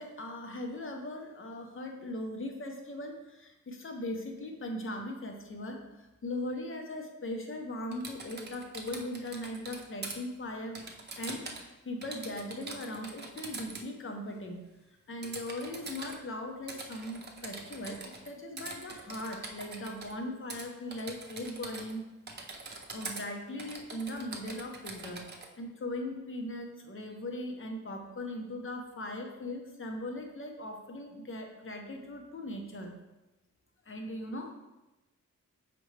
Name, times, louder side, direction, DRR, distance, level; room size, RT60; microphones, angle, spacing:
voice 1, 0.0-10.8 11.2-14.7 15.1-22.0 22.9-25.3 25.6-32.9 33.9-34.5, left 1 dB, 40° left, 3 dB, 0.9 m, -39 dB
Typing, 7.9-10.2 10.8-11.7 12.0-13.9 15.2-16.2 16.7-18.3 18.6-20.1 20.5-20.7 20.9-22.0 22.3-23.2 23.6-25.5, right 3 dB, 35° right, 0.7 m, -43 dB
6.7 x 5.1 x 3.3 m, 1.0 s
wide cardioid pair, 175°, 31 cm